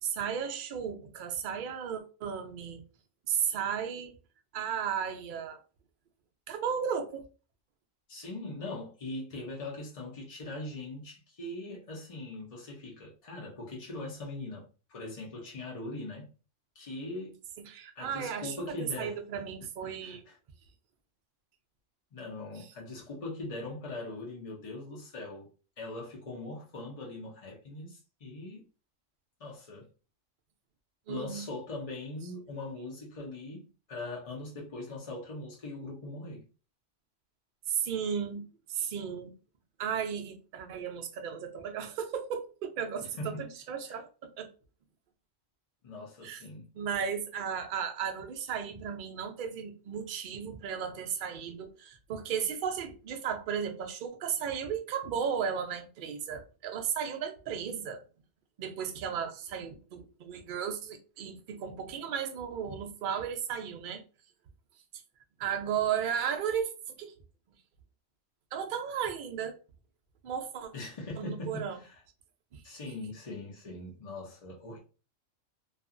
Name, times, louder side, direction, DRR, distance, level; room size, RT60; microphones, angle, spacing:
voice 1, 0.0-2.8 3.3-4.1 4.5-5.6 6.5-7.3 17.6-18.5 19.0-20.2 31.1-31.4 37.7-38.4 38.7-39.3 39.8-44.1 44.4-44.5 46.2-46.4 46.7-58.0 58.6-64.0 65.4-67.1 68.5-69.5 70.2-70.7 71.2-71.8 72.5-72.6, right 7 dB, 60° right, 0.5 m, -34 dB
voice 2, 8.1-16.3 16.7-17.4 18.0-19.2 19.8-20.4 22.1-25.5 25.8-28.7 29.4-29.9 31.1-36.4 43.2-43.5 43.9-44.0 45.8-46.7 70.7-72.0 72.6-74.8, left 2 dB, 45° left, 0.4 m, -41 dB
2.7 x 2.4 x 2.4 m
omnidirectional pair, 1.4 m